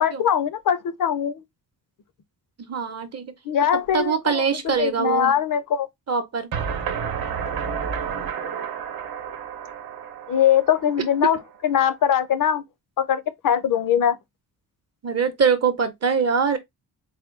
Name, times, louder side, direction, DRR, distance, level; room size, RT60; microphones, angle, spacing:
voice 1, 0.0-1.4 3.5-5.9 10.3-11.4 11.6-12.6 13.0-14.2, left 9 dB, 60° left, 0.7 m, -21 dB
voice 2, 2.6-3.3 3.9-5.4 6.1-6.5 15.0-16.6, right 6 dB, 45° right, 0.7 m, -23 dB
sound 1, 6.5-11.4, right 7 dB, 75° right, 0.8 m, -31 dB
4.2 x 2.2 x 3.6 m
wide cardioid pair, 140°, 38 cm